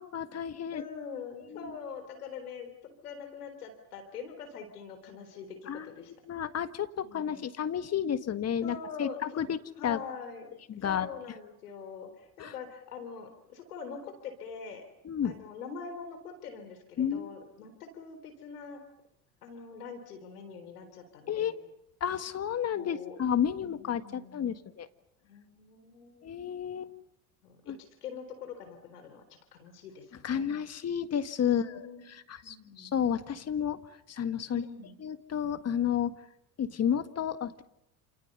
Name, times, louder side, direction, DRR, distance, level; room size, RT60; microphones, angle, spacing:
voice 1, 0.0-0.8 1.5-1.7 5.7-9.6 9.8-10.0 10.7-11.1 12.4-12.5 15.0-15.4 17.0-17.4 21.3-21.6 22.0-24.9 26.2-26.9 27.7-27.8 30.2-33.8 34.1-34.6 35.0-36.2 36.6-37.6, left 8 dB, 35° left, 11 dB, 1.7 m, -31 dB
voice 2, 0.7-6.1 7.0-7.5 8.6-9.5 9.8-10.5 10.9-14.8 15.2-18.8 19.4-21.5 22.7-23.2 23.6-24.6 25.2-26.3 27.4-27.7 28.0-29.3 29.5-30.5 31.4-32.1 32.4-33.0 34.5-35.0, left 5 dB, 80° left, 8 dB, 4.0 m, -44 dB
29.0 x 28.5 x 5.5 m, 0.77 s
hypercardioid pair, 80°, 45 cm